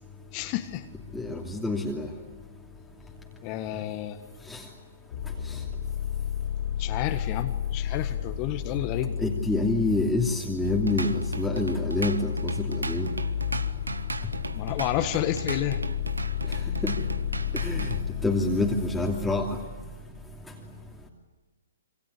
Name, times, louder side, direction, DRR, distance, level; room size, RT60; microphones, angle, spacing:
voice 1, 0.3-0.9 3.4-4.2 6.8-9.1 14.5-15.8, left 13 dB, 30° left, 7 dB, 1.7 m, -30 dB
voice 2, 1.1-2.1 4.5-4.6 9.2-13.1 16.8-17.0 17.5-19.5, left 2 dB, 5° left, -2 dB, 2.9 m, -27 dB
sound 1, 5.1-18.4, left 7 dB, 50° left, 3.8 m, -31 dB
Drum kit / Drum, 10.6-18.0, right 3 dB, 80° right, 1.4 m, -36 dB
27.0 x 25.5 x 8.4 m, 1.3 s
figure-of-eight pair, 125°, 0 cm